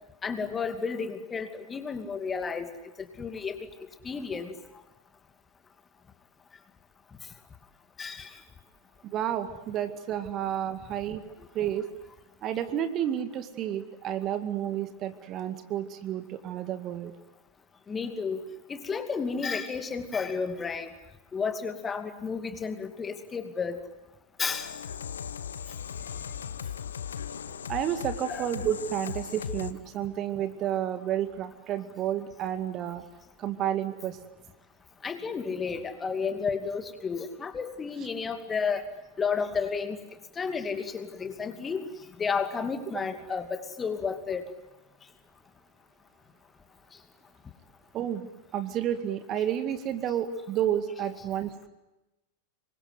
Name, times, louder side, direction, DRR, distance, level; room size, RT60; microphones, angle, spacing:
voice 1, 0.2-2.7 3.0-3.6 4.0-4.5 8.0-8.4 17.9-20.9 21.3-23.8 24.4-24.7 28.3-28.5 35.0-38.9 39.2-40.0 40.4-41.9 42.2-44.5, left 5 dB, 20° left, 8 dB, 2.5 m, -32 dB
voice 2, 9.1-11.2 11.5-11.9 12.4-17.1 27.7-33.0 33.4-34.2 47.9-51.5, right 10 dB, 35° right, 10 dB, 2.0 m, -31 dB
sound 1, 24.5-29.7, left 8 dB, 70° left, 1.1 m, -37 dB
26.5 x 23.5 x 9.3 m, 0.97 s
figure-of-eight pair, 90°, 0 cm